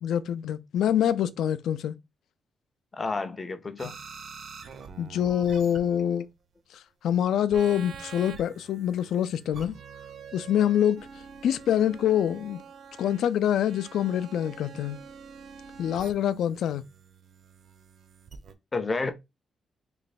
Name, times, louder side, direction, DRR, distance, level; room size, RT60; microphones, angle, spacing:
voice 1, 0.0-2.0 3.8-3.9 5.0-6.3 6.7-9.8 10.3-11.1 11.4-12.6 13.0-15.0 15.8-16.8, left 10 dB, 80° left, 0.4 m, -25 dB
voice 2, 2.9-3.9 18.7-19.1, left 3 dB, 20° left, 0.5 m, -30 dB
sound 1, 3.8-6.3 7.5-18.5, right 6 dB, 45° right, 0.6 m, -46 dB
3.2 x 3.1 x 4.2 m
wide cardioid pair, 180°, 0 cm